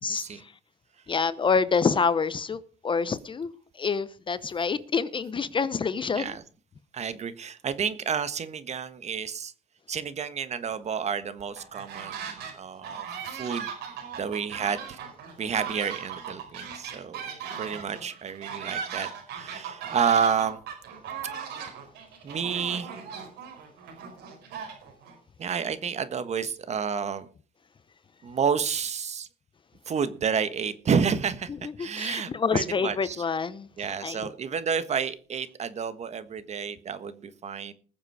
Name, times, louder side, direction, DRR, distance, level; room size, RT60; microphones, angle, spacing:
voice 1, 0.1-0.4 6.1-6.4 6.9-9.5 9.9-13.7 14.2-15.0 15.4-17.2 17.6-19.1 19.3-20.6 22.2-22.9 25.4-27.3 28.2-29.3 29.9-31.5 31.8-33.2 33.8-37.7, right 6 dB, 40° right, 1.4 m, -30 dB
voice 2, 1.1-3.5 3.8-6.3 31.6-34.2, left 5 dB, 30° left, 0.8 m, -27 dB
sound 1, 11.6-12.5 12.8-25.1, right 7 dB, 80° right, 5.1 m, -38 dB
20.5 x 7.3 x 4.8 m
cardioid pair, 110°, 17 cm